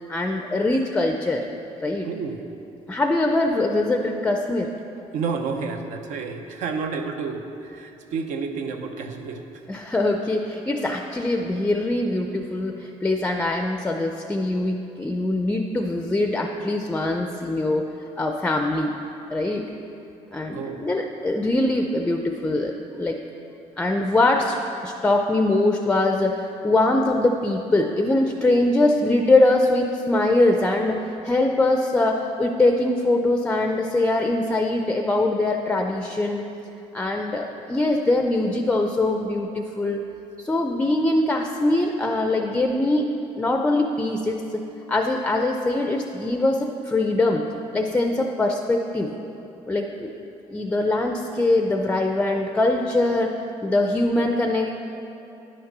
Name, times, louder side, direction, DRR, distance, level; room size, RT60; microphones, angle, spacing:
voice 1, 0.1-1.4 1.8-2.1 2.9-4.7 9.7-17.8 18.2-19.0 19.3-19.7 20.3-23.2 23.8-36.4 36.9-40.0 40.4-47.4 47.7-49.1 49.7-50.1 50.5-53.4 53.6-54.7, left 2 dB, 10° left, 3 dB, 0.4 m, -22 dB
voice 2, 2.0-2.5 5.1-9.6 20.5-20.8, right 5 dB, 75° right, 5 dB, 0.9 m, -30 dB
10.0 x 6.5 x 5.9 m, 2.9 s
cardioid pair, 145°, 13 cm